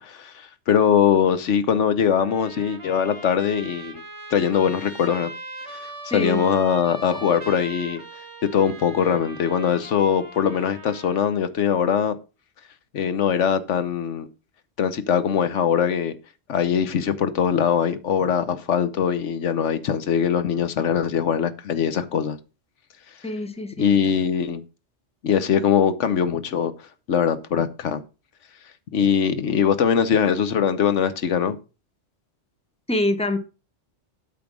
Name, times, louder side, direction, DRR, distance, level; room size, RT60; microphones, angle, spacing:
voice 1, 0.0-4.0 4.3-5.3 5.7-8.0 8.5-12.2 12.9-14.3 14.8-16.2 16.5-22.4 23.8-24.6 25.2-26.7 27.1-28.0 28.9-31.6, left 7 dB, 85° left, 1.2 m, -22 dB
Trumpet, 2.2-11.4, right 2 dB, 25° right, 1.4 m, -40 dB
voice 2, 6.1-6.4 23.2-24.0 32.9-33.4, left 1 dB, 5° left, 1.0 m, -25 dB
8.7 x 5.7 x 6.1 m
omnidirectional pair, 1.2 m